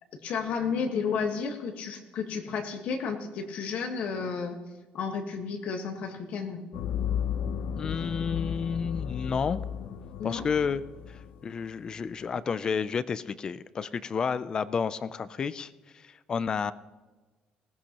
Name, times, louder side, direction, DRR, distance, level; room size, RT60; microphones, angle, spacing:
voice 1, 0.2-4.6 4.9-6.6 10.2-10.4, left 5 dB, 60° left, 3 dB, 1.4 m, -32 dB
sound 1, 6.7-11.5, left 8 dB, 75° left, 0.7 m, -34 dB
voice 2, 7.7-9.6 10.2-10.8 11.1-16.7, left 6 dB, 30° left, 15 dB, 0.4 m, -31 dB
19.5 x 17.5 x 2.9 m, 1.2 s
cardioid pair, 170°, 3 cm